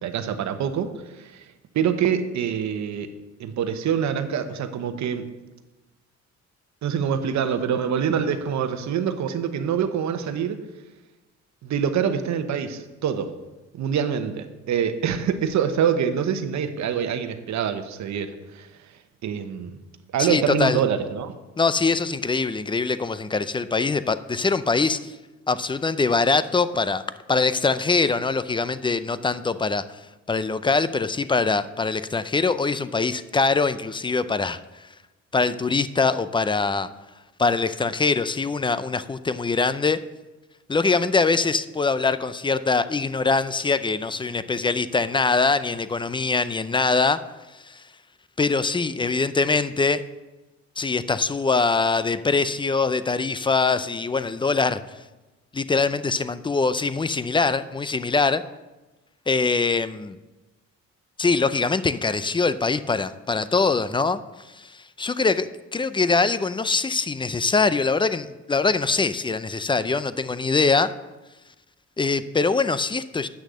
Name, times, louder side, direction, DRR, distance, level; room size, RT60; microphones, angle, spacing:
voice 1, 0.0-1.5 1.7-3.1 3.4-5.3 6.8-10.6 11.6-13.3 13.7-18.7 19.2-19.8 20.1-21.3, right 8 dB, 70° right, 9 dB, 1.0 m, -25 dB
voice 2, 20.2-20.8 21.6-25.1 25.5-27.0 27.3-30.0 30.3-34.6 35.3-36.9 37.4-40.0 40.7-47.2 47.7-47.8 48.4-50.0 50.8-54.8 55.5-58.4 59.3-60.2 61.2-64.2 64.5-70.9 72.0-73.3, left 4 dB, 15° left, 14 dB, 0.4 m, -23 dB
8.5 x 6.4 x 6.2 m, 1.1 s
cardioid pair, 90°, 30 cm